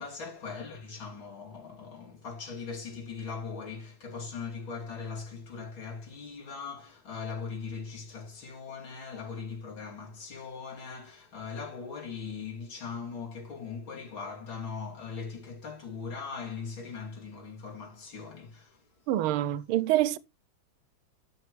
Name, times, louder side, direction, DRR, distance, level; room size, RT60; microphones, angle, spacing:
voice 1, 0.0-18.8, left 5 dB, 70° left, 3.6 m, -40 dB
voice 2, 19.1-20.2, right 14 dB, 90° right, 1.5 m, -26 dB
13.0 x 5.7 x 3.1 m
omnidirectional pair, 2.3 m